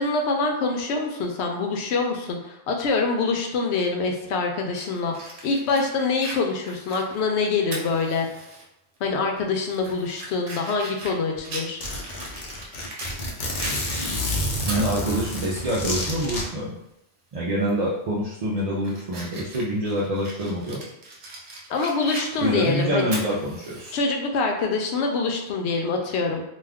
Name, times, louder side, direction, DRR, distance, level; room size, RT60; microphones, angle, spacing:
voice 1, 0.0-8.3 9.0-11.8 21.7-23.1 23.9-26.4, left 4 dB, 90° left, 2 dB, 0.9 m, -25 dB
Fire, 4.7-8.6 9.0-9.1 9.6-13.2 13.6-15.6 16.0-16.1 17.6-17.9 18.3-23.9, right 1 dB, 85° right, 1.0 m, -39 dB
Zipper (clothing), 11.0-11.1 11.4-11.5 11.8-16.4, left 1 dB, 55° left, 0.7 m, -29 dB
voice 2, 14.7-16.7 17.3-20.8 22.4-24.0, equal, 50° right, -7 dB, 0.5 m, -26 dB
2.4 x 2.3 x 3.4 m, 0.85 s
omnidirectional pair, 1.1 m